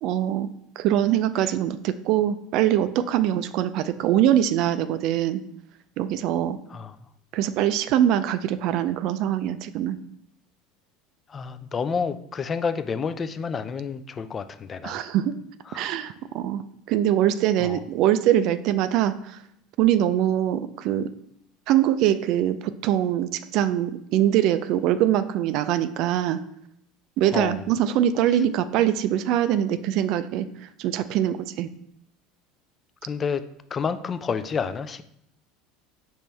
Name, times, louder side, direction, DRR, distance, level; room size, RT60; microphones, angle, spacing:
voice 1, 0.0-5.4 6.0-6.6 7.3-10.0 14.8-15.3 15.7-19.4 19.8-21.1 21.7-26.4 27.2-31.7, right 11 dB, 60° right, 12 dB, 0.3 m, -23 dB
voice 2, 11.3-15.0 15.7-15.9 17.6-17.8 27.3-27.7 33.0-35.0, left 6 dB, 30° left, 12 dB, 0.3 m, -29 dB
5.3 x 3.0 x 3.3 m, 0.75 s
hypercardioid pair, 85°, 0 cm